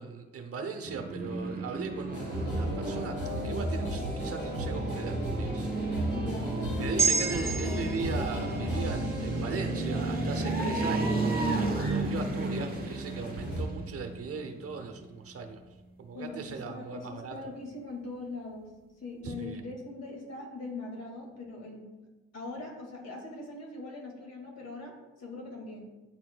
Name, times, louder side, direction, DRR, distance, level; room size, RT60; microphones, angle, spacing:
voice 1, 0.0-3.2 3.4-6.0 6.8-11.2 11.4-15.6 16.0-17.3 19.2-19.6, right 5 dB, 50° right, 6 dB, 0.8 m, -39 dB
sound 1, 0.9-15.0, right 2 dB, 30° right, 1.1 m, -34 dB
sound 2, 2.1-13.6, equal, 35° left, 1.9 m, -35 dB
voice 2, 6.1-8.1 10.5-10.9 11.9-12.3 16.1-21.9 22.3-25.9, left 2 dB, 60° left, 0 dB, 2.0 m, -42 dB
sound 3, 7.0-11.5 11.9-12.0, right 6 dB, 10° right, 1.3 m, -34 dB
9.8 x 4.3 x 2.2 m, 1.1 s
cardioid pair, 90°, 30 cm